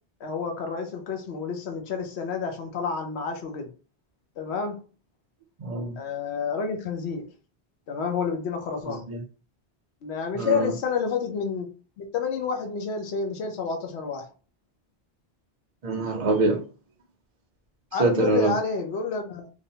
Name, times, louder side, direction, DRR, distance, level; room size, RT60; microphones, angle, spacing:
voice 1, 0.2-3.7 4.4-4.8 6.0-7.3 7.9-9.1 10.0-11.7 12.0-14.3 17.9-19.5, left 5 dB, 80° left, 0.9 m, -29 dB
voice 2, 5.6-6.0 8.9-9.2 10.3-10.7 15.8-16.6 18.0-18.5, right 3 dB, 50° right, 0.5 m, -24 dB
2.8 x 2.0 x 2.7 m
omnidirectional pair, 1.1 m